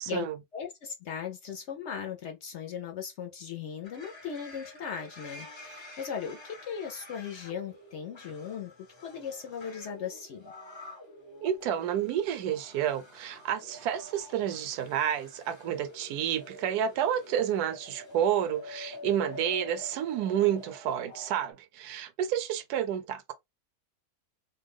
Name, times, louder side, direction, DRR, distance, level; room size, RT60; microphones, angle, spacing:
voice 1, 0.0-0.4 11.4-23.3, right 10 dB, 80° right, 1.1 m, -30 dB
voice 2, 0.5-8.7 9.0-10.5, left 7 dB, 65° left, 0.7 m, -38 dB
sound 1, 3.8-21.5, left 2 dB, 30° left, 0.5 m, -47 dB
2.6 x 2.2 x 3.4 m
omnidirectional pair, 1.6 m